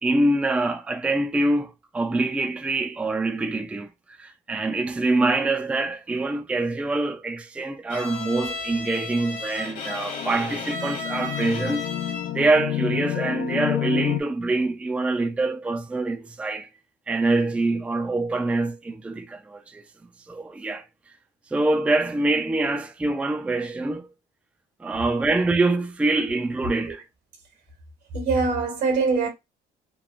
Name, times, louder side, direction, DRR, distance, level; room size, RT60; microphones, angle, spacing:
voice 1, 0.0-11.9 12.3-16.7 17.1-19.8 20.3-20.9 21.5-24.1 24.8-27.0, right 2 dB, 5° right, 0.3 m, -25 dB
Bowed string instrument, 7.9-12.5, left 3 dB, 50° left, 1.2 m, -34 dB
sound 1, 9.5-14.2, left 12 dB, 80° left, 0.4 m, -30 dB
voice 2, 28.1-29.3, right 4 dB, 80° right, 1.4 m, -23 dB
3.0 x 2.2 x 2.5 m
cardioid pair, 110°, 17 cm